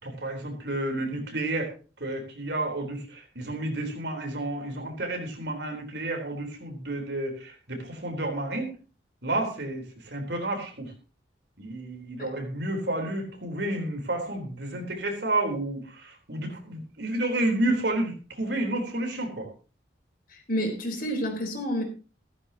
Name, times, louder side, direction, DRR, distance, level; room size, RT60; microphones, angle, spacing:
voice 1, 0.0-1.7 2.0-8.7 9.2-10.9 11.6-19.5, right 1 dB, 65° right, 3 dB, 3.8 m, -30 dB
voice 2, 20.3-21.8, equal, 50° left, 3 dB, 3.9 m, -29 dB
15.5 x 13.5 x 2.9 m, 0.34 s
head